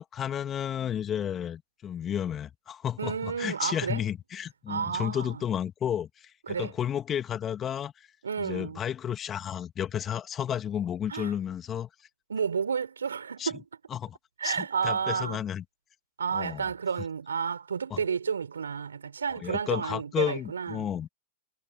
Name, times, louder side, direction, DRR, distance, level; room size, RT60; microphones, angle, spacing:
voice 1, 0.0-8.1 8.4-11.9 13.4-13.5 13.9-14.2 14.4-14.6 14.8-15.6 16.3-16.7 17.9-18.0 19.3-21.1, left 9 dB, 25° left, 2.3 m, -32 dB
voice 2, 3.0-4.1 4.7-5.4 6.5-6.7 8.2-8.8 11.1-11.3 12.3-13.6 14.4-15.4 16.2-20.9, right 6 dB, 80° right, 4.6 m, -31 dB
hypercardioid pair, 100°, 0 cm